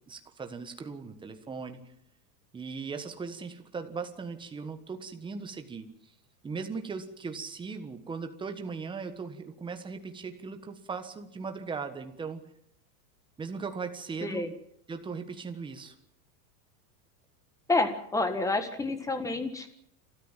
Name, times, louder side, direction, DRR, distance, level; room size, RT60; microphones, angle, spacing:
voice 1, 0.1-1.8 2.5-5.9 6.4-12.4 13.4-14.5 14.9-15.9, right 5 dB, 10° right, 7 dB, 1.4 m, -38 dB
voice 2, 14.2-14.5 17.7-19.7, left 2 dB, 5° left, 9 dB, 1.6 m, -29 dB
29.0 x 13.5 x 7.4 m, 0.72 s
supercardioid pair, 160°, 49 cm